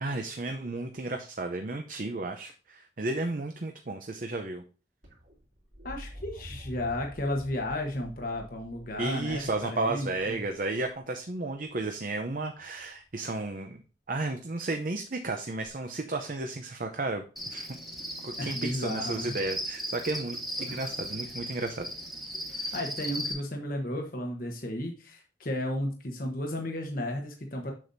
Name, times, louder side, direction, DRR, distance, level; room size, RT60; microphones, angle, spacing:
voice 1, 0.0-4.6 9.0-13.8 14.1-17.2 17.5-17.8 18.2-21.9, right 2 dB, 50° right, 5 dB, 0.7 m, -33 dB
sound 1, 5.0-11.0 12.6-13.1 15.6-15.7, equal, 80° right, 3.1 m, -48 dB
voice 2, 5.8-10.4 18.4-19.3 20.7-20.9 22.5-27.7, left 1 dB, 50° left, 1 dB, 1.1 m, -34 dB
Cricket, 17.4-23.3, equal, ahead, 1.4 m, -37 dB
7.6 x 6.9 x 2.7 m, 0.36 s
head